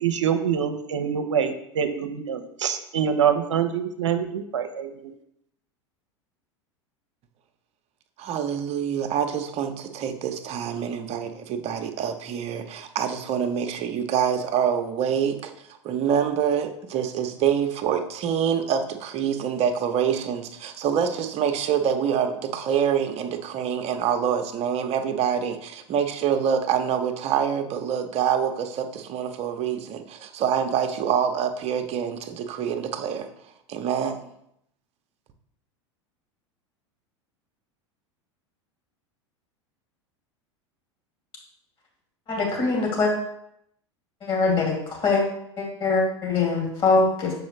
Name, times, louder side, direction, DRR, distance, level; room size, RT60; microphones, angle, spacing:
voice 1, 0.0-5.1, right 8 dB, 75° right, 8 dB, 0.7 m, -25 dB
voice 2, 8.2-15.5 15.8-33.3 33.7-34.3, right 8 dB, 40° right, 6 dB, 0.8 m, -26 dB
voice 3, 42.3-43.1 44.2-45.2 45.6-47.3, left 3 dB, 35° left, -1 dB, 2.7 m, -23 dB
7.1 x 4.8 x 3.3 m, 0.76 s
hypercardioid pair, 90°, 15 cm